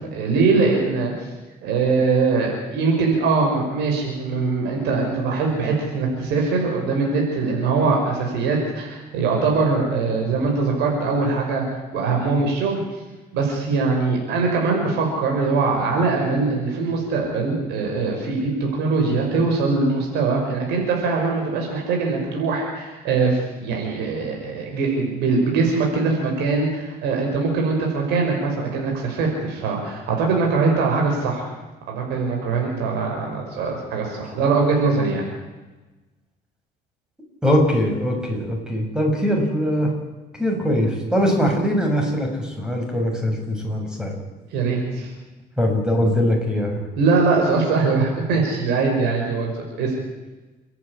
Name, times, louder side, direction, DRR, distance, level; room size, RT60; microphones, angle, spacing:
voice 1, 0.1-1.3 1.6-12.8 13.3-31.5 31.9-35.2 44.5-45.1 47.0-49.5 49.8-50.0, right 4 dB, 90° right, 0 dB, 5.9 m, -22 dB
voice 2, 37.4-39.9 40.4-44.2 45.6-46.8, equal, 5° right, 2 dB, 6.4 m, -21 dB
29.0 x 11.0 x 10.0 m, 1.2 s
cardioid pair, 110°, 17 cm